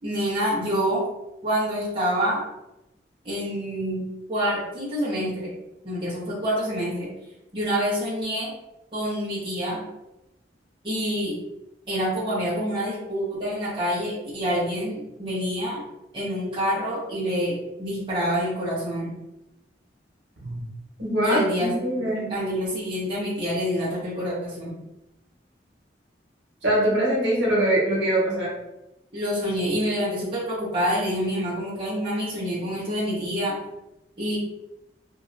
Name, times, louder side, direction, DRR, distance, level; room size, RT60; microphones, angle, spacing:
voice 1, 0.0-1.0 1.4-2.4 3.2-5.5 5.8-7.1 7.5-8.5 8.9-9.8 10.8-11.4 11.9-15.8 16.1-19.1 21.2-24.7 29.1-33.6 34.2-34.4, equal, 30° right, -9 dB, 1.1 m, -27 dB
voice 2, 21.0-22.3 26.6-28.5, right 1 dB, 75° right, -5 dB, 1.3 m, -23 dB
2.8 x 2.8 x 2.5 m, 0.91 s
head